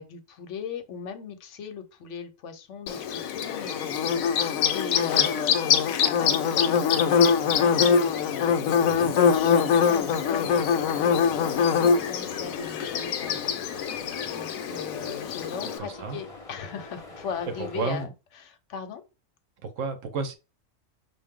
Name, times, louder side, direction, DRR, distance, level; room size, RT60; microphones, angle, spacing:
voice 1, 0.0-4.0 4.3-11.1 11.4-13.5 13.8-19.0, left 6 dB, 65° left, 1.1 m, -38 dB
Bird / Buzz, 2.9-15.8, left 7 dB, 90° left, 1.0 m, -23 dB
voice 2, 8.8-9.2 15.8-16.2 17.5-18.1 19.6-20.3, right 4 dB, 70° right, 1.1 m, -32 dB
sound 1, 8.9-18.1, left 2 dB, 30° left, 1.1 m, -47 dB
5.6 x 2.6 x 3.6 m
omnidirectional pair, 1.4 m